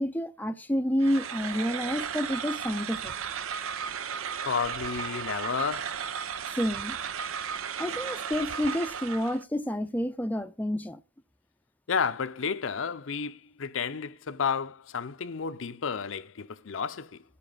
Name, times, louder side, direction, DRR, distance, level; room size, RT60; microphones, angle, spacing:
voice 1, 0.0-3.1 6.6-7.0 7.8-11.0, equal, 10° left, 0.5 m, -29 dB
sound 1, 1.0-9.4, right 7 dB, 90° right, 0.6 m, -35 dB
voice 2, 4.4-6.0 11.9-17.2, left 6 dB, 70° left, 0.6 m, -31 dB
18.0 x 7.0 x 3.9 m
head